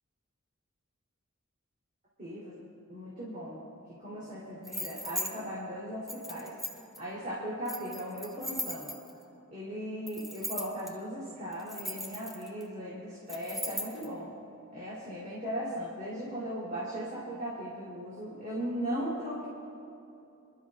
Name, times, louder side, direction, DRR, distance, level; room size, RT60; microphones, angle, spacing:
voice 1, 2.2-2.6 2.9-3.7 4.0-6.5 7.0-8.9 9.5-14.3 14.7-19.5, equal, 40° right, -9 dB, 3.5 m, -37 dB
sound 1, 4.6-5.3 6.1-7.0 7.7-9.2 10.1-10.9 11.5-12.6 13.3-14.1, left 1 dB, ahead, 1.2 m, -37 dB
26.0 x 12.5 x 2.5 m, 2.8 s
head